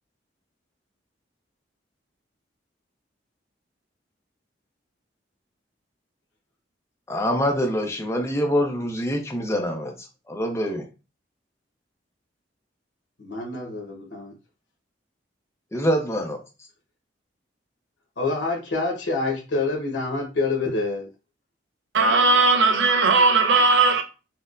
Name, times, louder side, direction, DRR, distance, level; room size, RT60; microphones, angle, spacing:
voice 1, 7.1-10.9 15.7-16.4, equal, 15° left, 0.5 m, -25 dB
voice 2, 13.2-14.3 18.2-21.1, left 3 dB, 90° left, 1.0 m, -27 dB
voice 3, 21.9-24.0, right 3 dB, 80° right, 0.6 m, -18 dB
4.3 x 2.1 x 2.5 m
head